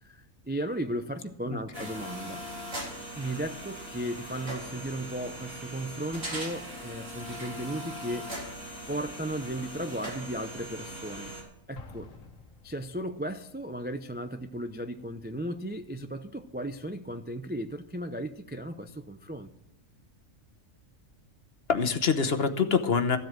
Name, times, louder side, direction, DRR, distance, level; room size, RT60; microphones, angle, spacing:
voice 1, 0.0-2.4 3.2-8.3 8.9-11.3 11.7-12.1 12.6-19.5, right 1 dB, 15° right, 7 dB, 0.3 m, -35 dB
voice 2, 1.5-1.9 21.7-23.2, left 5 dB, 50° left, 8 dB, 1.2 m, -26 dB
sound 1, 1.7-11.4, right 1 dB, 70° right, 4.3 m, -40 dB
Explosion, 11.8-13.3, left 3 dB, 75° left, 1.6 m, -49 dB
15.0 x 7.8 x 7.5 m, 0.81 s
omnidirectional pair, 1.4 m